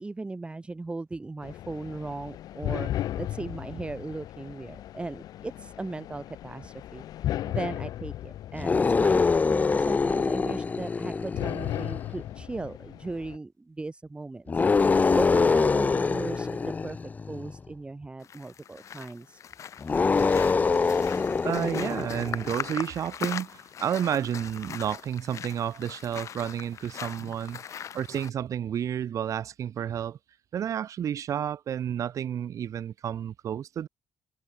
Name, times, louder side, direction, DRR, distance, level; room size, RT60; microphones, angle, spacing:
voice 1, 0.0-7.0 7.4-14.6 15.1-17.0 17.3-19.4, right 3 dB, 15° right, 2.5 m, -37 dB
sound 1, 1.4-13.4, left 13 dB, 80° left, 5.1 m, -36 dB
sound 2, 8.5-12.1 14.5-17.6 19.8-22.5, left 4 dB, 25° left, 0.8 m, -24 dB
sound 3, 18.2-28.3, left 9 dB, 55° left, 2.1 m, -40 dB
voice 2, 21.4-30.2 30.5-33.9, right 9 dB, 55° right, 1.8 m, -31 dB
cardioid pair, 130°, 6 cm